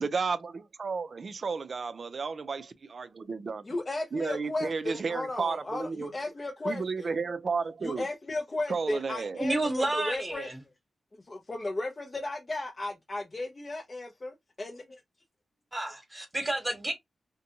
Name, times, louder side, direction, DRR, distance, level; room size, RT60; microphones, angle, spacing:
voice 1, 0.0-3.6 4.1-6.1 6.6-8.1 8.7-9.4, right 4 dB, 50° right, 0.4 m, -32 dB
voice 2, 3.6-7.2 7.8-10.5 11.3-15.0, left 2 dB, 30° left, 0.5 m, -35 dB
voice 3, 9.4-10.6 15.7-16.9, right 2 dB, 25° right, 1.0 m, -30 dB
2.6 x 2.2 x 2.7 m
cardioid pair, 90°, 0 cm